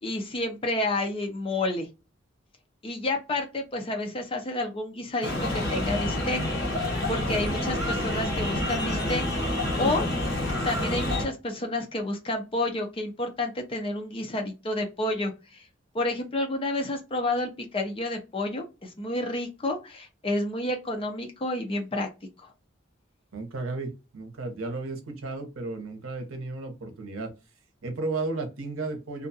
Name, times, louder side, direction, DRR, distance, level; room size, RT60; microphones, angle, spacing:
voice 1, 0.0-1.9 2.8-6.4 6.8-9.5 9.8-10.0 10.6-15.6 15.9-22.1, left 2 dB, 25° left, 3 dB, 0.5 m, -30 dB
sound 1, 5.2-11.3, left 1 dB, 50° left, 0.9 m, -28 dB
voice 2, 23.3-27.3 27.8-29.3, right 3 dB, 90° right, 4 dB, 0.8 m, -34 dB
2.5 x 2.3 x 2.6 m, 0.27 s
head